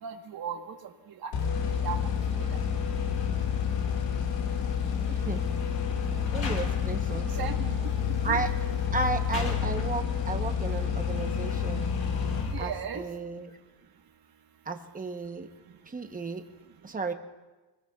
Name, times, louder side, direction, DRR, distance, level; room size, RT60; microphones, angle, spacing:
voice 1, 0.0-1.3 1.8-2.1 7.1-7.8 8.3-8.4 12.5-13.1, right 7 dB, 50° right, 5 dB, 1.4 m, -37 dB
sound 1, 1.3-13.0, left 7 dB, 65° left, 2.1 m, -30 dB
sound 2, 1.5-12.5, left 6 dB, 40° left, 4.8 m, -34 dB
voice 2, 5.1-5.5 6.3-7.5 8.2-8.5 8.9-11.9 12.6-13.6 14.7-15.5 15.9-16.5 16.8-17.1, right 4 dB, 20° right, 6 dB, 0.9 m, -34 dB
25.5 x 20.5 x 2.4 m, 1.2 s
cardioid pair, 165°, 46 cm